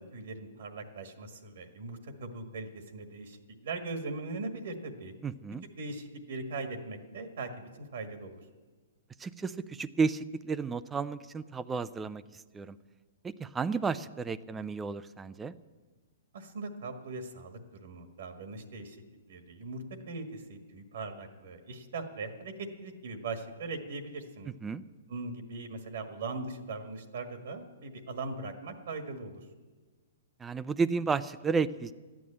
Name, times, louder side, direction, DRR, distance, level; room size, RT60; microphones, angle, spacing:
voice 1, 0.0-5.1 5.8-8.4 16.3-19.0 19.3-24.5 25.1-29.4, right 3 dB, 70° right, 6 dB, 1.7 m, -40 dB
voice 2, 5.2-5.6 9.2-12.2 12.5-12.8 13.2-15.5 24.6-24.8 30.4-31.9, right 5 dB, 15° right, 15 dB, 0.5 m, -32 dB
13.5 x 9.4 x 8.6 m, 1.3 s
hypercardioid pair, 135°, 0 cm